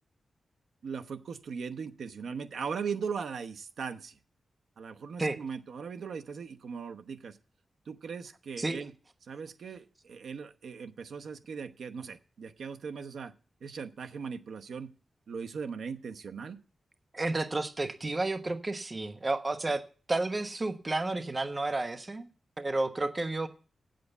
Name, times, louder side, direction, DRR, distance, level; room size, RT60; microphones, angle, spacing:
voice 1, 0.8-4.2 4.8-7.4 7.9-8.9 9.2-13.3 13.6-14.9 15.3-16.6, right 6 dB, 80° right, 7 dB, 0.9 m, -39 dB
voice 2, 17.1-19.8 20.1-22.3 22.6-23.5, right 2 dB, 30° right, 8 dB, 1.1 m, -31 dB
8.3 x 7.8 x 7.9 m, 0.37 s
wide cardioid pair, 100°, 0 cm